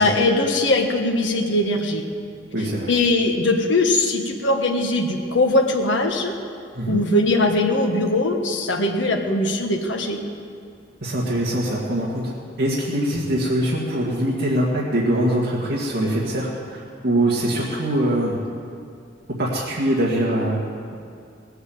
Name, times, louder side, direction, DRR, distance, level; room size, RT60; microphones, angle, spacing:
voice 1, 0.0-2.0 2.9-6.3 6.9-10.2, left 2 dB, 70° left, 2 dB, 1.4 m, -20 dB
voice 2, 2.5-2.9 6.7-7.0 11.0-12.3 12.6-18.4 19.4-20.6, right 1 dB, 60° right, -5 dB, 2.0 m, -23 dB
18.5 x 8.1 x 7.9 m, 2.3 s
head